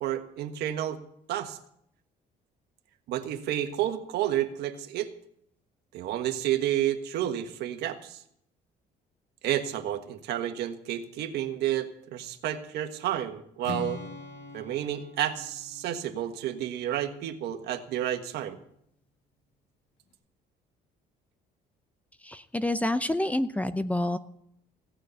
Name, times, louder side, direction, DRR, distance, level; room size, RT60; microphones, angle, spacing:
voice 1, 0.0-1.0 1.3-1.6 3.1-5.1 5.9-8.2 9.4-14.0 14.5-18.6, right 11 dB, 80° right, 7 dB, 1.4 m, -30 dB
Strum, 13.6-17.7, left 4 dB, 90° left, 2.0 m, -43 dB
voice 2, 22.2-24.2, left 1 dB, 10° left, 12 dB, 0.7 m, -28 dB
16.5 x 6.4 x 9.2 m, 0.71 s
cardioid pair, 110°, 17 cm